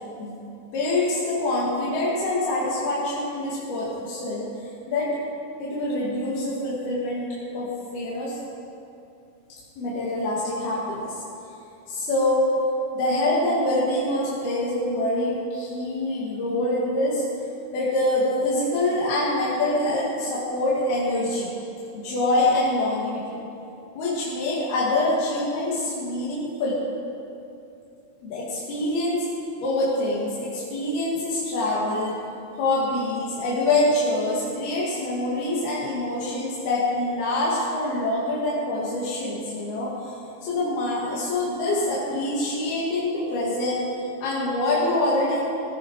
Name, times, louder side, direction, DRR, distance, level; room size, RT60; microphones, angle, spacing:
voice 1, 0.7-4.5 4.9-5.2 5.6-7.3 7.5-8.4 9.5-11.1 11.9-12.6 12.9-17.2 17.7-21.5 21.9-23.2 24.0-26.8 28.2-29.3 29.6-32.1 32.5-43.9 44.2-45.4, left 1 dB, 80° left, -7 dB, 4.2 m, -25 dB
20.0 x 15.0 x 4.8 m, 2.8 s
omnidirectional pair, 4.4 m